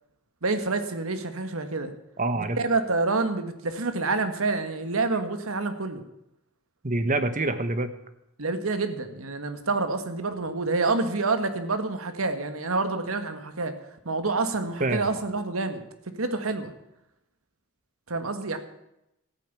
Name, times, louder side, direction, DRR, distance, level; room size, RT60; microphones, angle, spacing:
voice 1, 0.4-1.9 2.4-6.0 8.4-13.7 14.0-15.8 16.2-16.7 18.1-18.6, right 3 dB, 90° right, 9 dB, 1.6 m, -27 dB
voice 2, 2.2-2.6 6.8-7.9 14.8-15.2, right 2 dB, 40° right, 10 dB, 1.1 m, -26 dB
14.0 x 9.0 x 8.4 m, 0.84 s
head